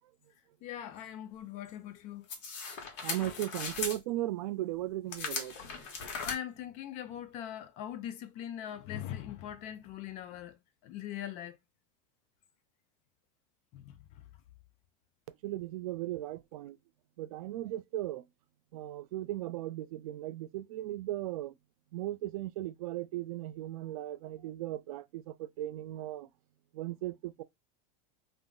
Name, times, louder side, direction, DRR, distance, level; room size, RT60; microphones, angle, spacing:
voice 1, 0.6-2.3 3.1-3.4 5.6-5.7 6.2-11.6 13.7-14.2, left 11 dB, 40° left, 0.5 m, -42 dB
sound 1, 2.3-4.0 5.1-6.3, left 5 dB, 60° left, 1.0 m, -38 dB
voice 2, 3.0-5.6 15.4-16.8 17.2-18.2 18.7-21.5 21.9-26.3 26.7-27.4, right 15 dB, 80° right, 0.4 m, -37 dB
2.3 x 2.0 x 3.7 m
supercardioid pair, 145°, 18 cm